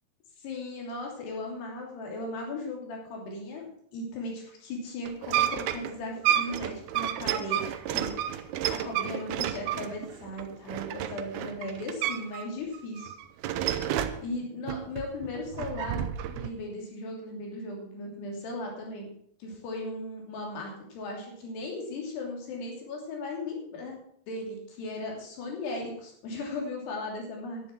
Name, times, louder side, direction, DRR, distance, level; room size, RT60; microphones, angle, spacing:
voice 1, 0.4-3.7 3.9-7.6 7.9-13.1 14.2-16.0 16.4-19.1 19.4-23.9 24.3-27.6, left 2 dB, 90° left, 0 dB, 5.2 m, -37 dB
sound 1, 5.1-12.5 12.7-14.2 14.7-16.5, right 11 dB, 80° right, 2.7 m, -31 dB
11.0 x 10.5 x 6.0 m, 0.65 s
omnidirectional pair, 4.6 m